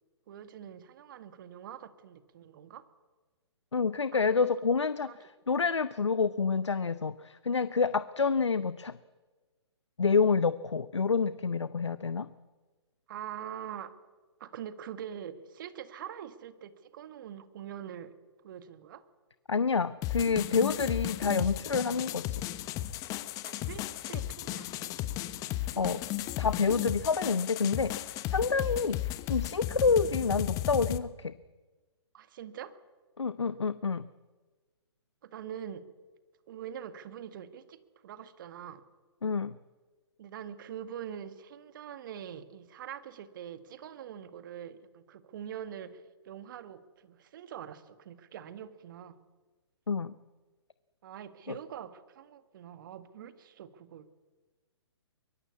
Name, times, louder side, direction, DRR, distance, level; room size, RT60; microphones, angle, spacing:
voice 1, 0.3-2.8 4.1-4.5 5.0-5.2 13.1-14.0 14.4-18.1 18.4-19.0 23.4-24.9 32.1-32.8 35.2-35.8 36.5-38.8 40.2-49.2 51.0-54.1, right 9 dB, 45° right, 11 dB, 1.9 m, -44 dB
voice 2, 3.7-9.0 10.0-12.3 19.5-22.4 25.8-26.0 26.4-27.9 28.3-31.3 33.2-34.0 39.2-39.6 49.9-50.1, left 5 dB, 80° left, 15 dB, 0.8 m, -28 dB
sound 1, 20.0-31.0, left 14 dB, 25° left, 1.1 m, -35 dB
23.0 x 23.0 x 8.4 m, 1.3 s
figure-of-eight pair, 130°, 15 cm